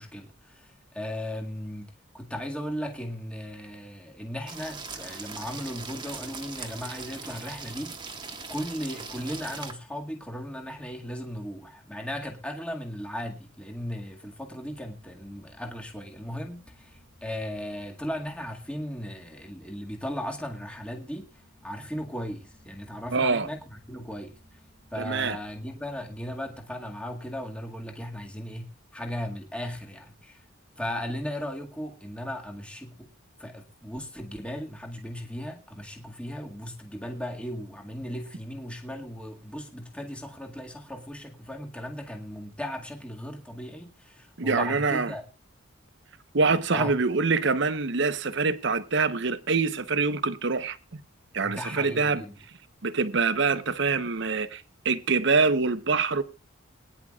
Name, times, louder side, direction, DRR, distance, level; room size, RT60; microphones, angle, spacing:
voice 1, 0.0-8.0 8.5-21.3 21.6-24.4 24.9-30.4 30.8-33.1 33.4-45.2 46.7-46.9 51.4-52.4, equal, 5° left, 1.9 m, -37 dB
sound 1, 4.5-9.7, right 4 dB, 25° right, 1.5 m, -40 dB
sound 2, 14.7-26.6, equal, 90° left, 4.9 m, -60 dB
voice 2, 23.1-23.5 25.0-25.4 44.4-45.2 46.3-51.0 51.3-52.2 52.8-56.2, right 4 dB, 60° right, 0.9 m, -25 dB
22.5 x 10.5 x 2.4 m
head